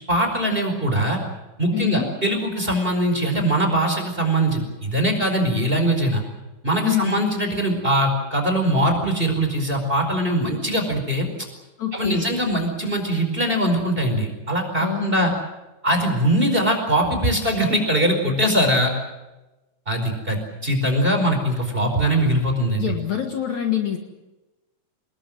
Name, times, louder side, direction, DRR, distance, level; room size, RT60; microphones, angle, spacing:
voice 1, 0.1-1.2 1.6-6.2 6.6-11.3 11.9-15.3 15.8-18.9 19.9-22.9, right 1 dB, 15° right, 3 dB, 4.7 m, -21 dB
voice 2, 1.7-2.1 6.8-7.2 11.8-12.3 14.8-15.4 22.8-24.0, left 11 dB, 55° left, 4 dB, 2.7 m, -25 dB
25.5 x 21.0 x 7.6 m, 1.1 s
omnidirectional pair, 4.2 m